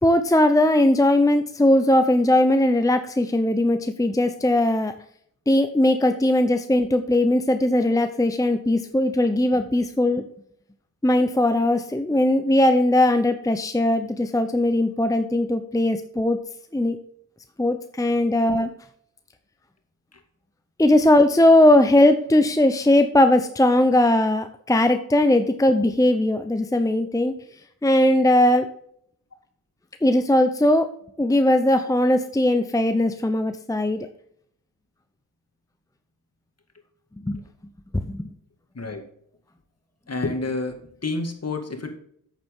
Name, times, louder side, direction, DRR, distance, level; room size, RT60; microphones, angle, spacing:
voice 1, 0.0-4.9 5.5-10.2 11.0-16.4 16.7-17.0 17.6-18.7 20.8-27.3 27.8-28.7 30.0-30.9 31.2-34.1 37.2-37.4 38.0-38.3, left 1 dB, 10° left, 8 dB, 0.7 m, -19 dB
voice 2, 38.7-39.1 40.1-41.9, left 3 dB, 45° left, 5 dB, 2.1 m, -29 dB
8.3 x 7.5 x 3.7 m, 0.66 s
cardioid pair, 50°, 36 cm